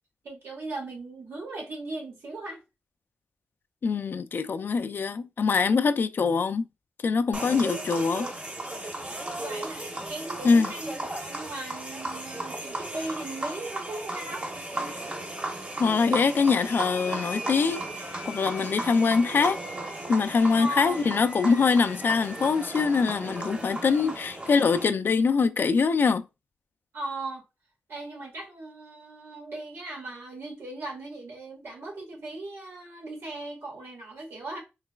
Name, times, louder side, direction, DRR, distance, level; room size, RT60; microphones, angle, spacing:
voice 1, 0.2-2.6 8.0-8.1 9.3-9.8 10.1-14.5 20.5-21.0 23.8-24.2 26.9-27.5 27.9-34.6, right 2 dB, 80° right, 1.8 m, -38 dB
voice 2, 3.8-6.7 7.0-8.3 10.4-10.7 15.8-17.8 18.3-19.6 20.1-26.3, left 5 dB, 55° left, 0.4 m, -23 dB
sound 1, 7.3-24.8, right 1 dB, 35° right, 1.0 m, -35 dB
sound 2, 16.7-24.6, equal, 5° right, 0.5 m, -45 dB
3.9 x 3.1 x 2.3 m
wide cardioid pair, 105°, 4 cm